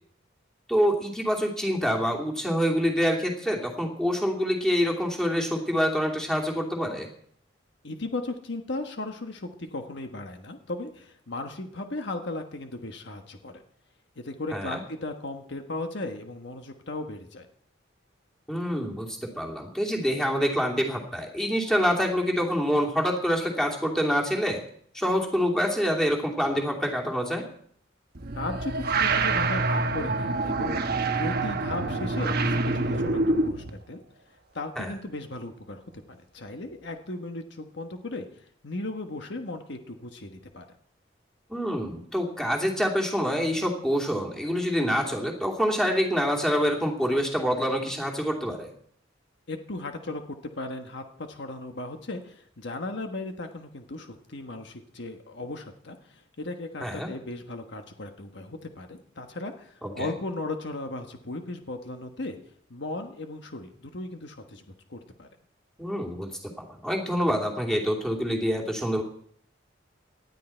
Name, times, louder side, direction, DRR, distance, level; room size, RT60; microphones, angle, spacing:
voice 1, 0.7-7.1 14.5-14.8 18.5-24.6 24.9-27.5 34.8-34.9 41.5-48.7 56.8-57.1 59.8-60.1 65.8-69.0, equal, 5° left, -1 dB, 2.8 m, -26 dB
voice 2, 7.8-13.6 14.2-17.5 28.3-34.0 34.5-40.7 49.5-62.4 62.7-64.6 64.9-65.3, left 2 dB, 65° left, 5 dB, 1.3 m, -36 dB
sound 1, 28.1-33.7, right 3 dB, 55° right, 1.2 m, -26 dB
18.5 x 12.5 x 4.5 m, 0.63 s
head